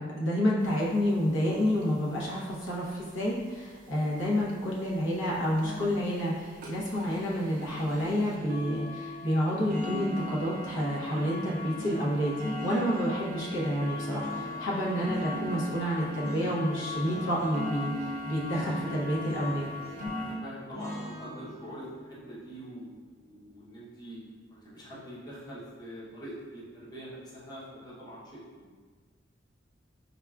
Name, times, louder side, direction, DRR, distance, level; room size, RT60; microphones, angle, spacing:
voice 1, 0.0-19.7, equal, 80° left, -5 dB, 0.7 m, -29 dB
sound 1, 0.6-0.7 1.0-1.1 1.3-1.5 1.8-2.2 2.9-3.0 3.5-3.6 4.0-4.1 4.5-4.6 5.1-5.2 5.6-5.8 6.2-6.3 6.6-20.4, left 1 dB, 45° right, 0.5 m, -38 dB
sound 2, 5.6-6.2 7.0-8.5 9.5-10.9 11.7-13.2 14.0-15.4 16.2-16.5 16.8-17.6 18.4-20.2 20.7-23.8, equal, 60° left, 1.3 m, -44 dB
voice 2, 20.1-24.2 24.5-28.7, equal, 20° left, -7 dB, 0.7 m, -44 dB
5.0 x 2.3 x 2.3 m, 1.5 s
head